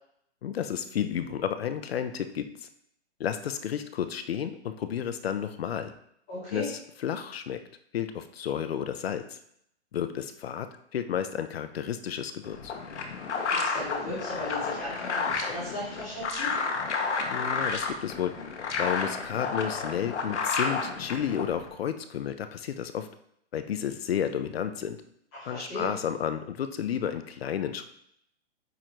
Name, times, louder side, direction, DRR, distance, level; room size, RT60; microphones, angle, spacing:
voice 1, 0.4-2.7 3.2-5.9 6.5-6.7 7.0-7.6 7.9-9.4 9.9-12.7 17.3-18.3 18.8-23.1 23.5-25.0 25.4-27.8, left 9 dB, 60° left, 9 dB, 0.7 m, -32 dB
voice 2, 6.3-6.7 13.3-16.5 25.3-25.9, left 1 dB, 5° left, -12 dB, 0.4 m, -36 dB
sound 1, 12.4-21.7, left 4 dB, 85° left, 1.3 m, -31 dB
9.2 x 3.8 x 3.1 m, 0.71 s
hypercardioid pair, 165°, 34 cm